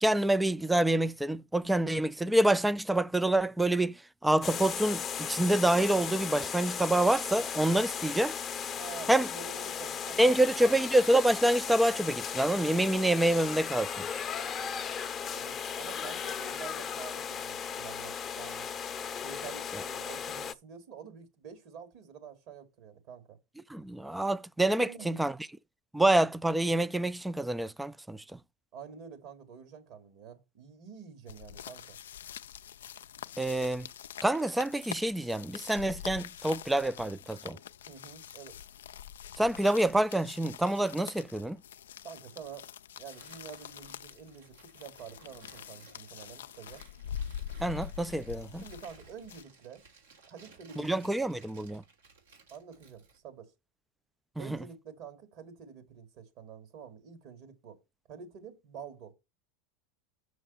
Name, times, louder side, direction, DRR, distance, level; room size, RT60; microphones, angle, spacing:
voice 1, 0.0-8.4 9.1-9.3 10.2-14.0 23.7-25.3 25.9-28.2 33.4-33.9 34.2-37.6 39.4-41.6 47.6-48.6 50.8-51.8 54.5-54.6, right 1 dB, 5° right, 0.3 m, -27 dB
sound 1, 4.4-20.5, left 7 dB, 30° left, 0.7 m, -36 dB
voice 2, 8.8-10.8 15.3-18.7 19.2-23.4 24.8-25.3 28.7-32.0 37.9-38.6 42.0-42.7 43.0-46.8 48.6-49.8 50.3-51.1 52.5-53.5 54.4-57.8 58.1-59.1, right 7 dB, 60° right, 2.3 m, -48 dB
sound 2, 31.3-49.4, left 9 dB, 85° left, 0.3 m, -45 dB
Tearing, 43.0-53.2, right 4 dB, 85° right, 3.0 m, -59 dB
6.3 x 6.1 x 5.5 m
hypercardioid pair, 95°, 0 cm